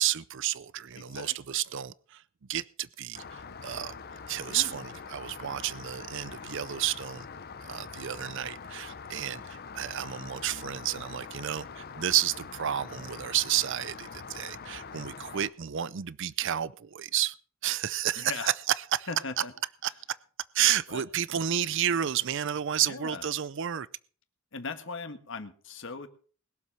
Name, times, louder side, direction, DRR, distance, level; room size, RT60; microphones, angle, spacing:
voice 1, 0.0-2.2 2.5-3.9 4.3-7.3 7.6-17.3 17.6-19.1 19.8-19.9 20.5-23.9, right 11 dB, 60° right, 19 dB, 0.5 m, -31 dB
voice 2, 1.0-1.3 4.5-4.8 18.2-18.5 19.1-19.5 20.9-21.0 22.8-23.2 24.5-26.1, left 4 dB, 65° left, 8 dB, 1.6 m, -39 dB
Rain, 3.1-15.5, left 5 dB, 50° left, 0.7 m, -44 dB
20.5 x 7.5 x 5.6 m, 0.42 s
head